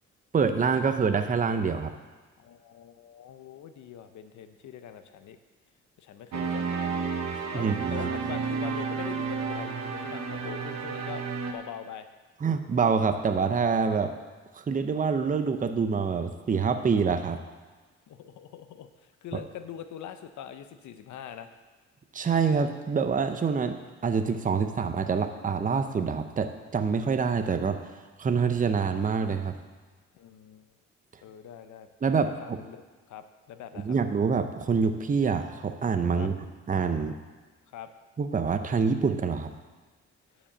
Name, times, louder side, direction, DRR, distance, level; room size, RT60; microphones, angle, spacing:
voice 1, 0.3-1.9 7.5-8.1 12.4-14.1 14.6-17.4 22.1-27.8 28.2-29.5 32.0-32.6 33.8-36.3 36.7-37.1 38.2-39.5, right 5 dB, 25° right, 8 dB, 0.7 m, -26 dB
voice 2, 2.4-5.4 6.0-7.1 7.5-12.1 18.1-21.5 30.1-30.6 31.2-31.9 32.2-32.8 33.1-33.9 36.1-36.3 37.7-37.9, left 9 dB, 70° left, 9 dB, 0.8 m, -43 dB
sound 1, 6.3-11.5, right 5 dB, 65° right, 1.1 m, -31 dB
9.6 x 5.3 x 7.3 m, 1.4 s
cardioid pair, 90°, 30 cm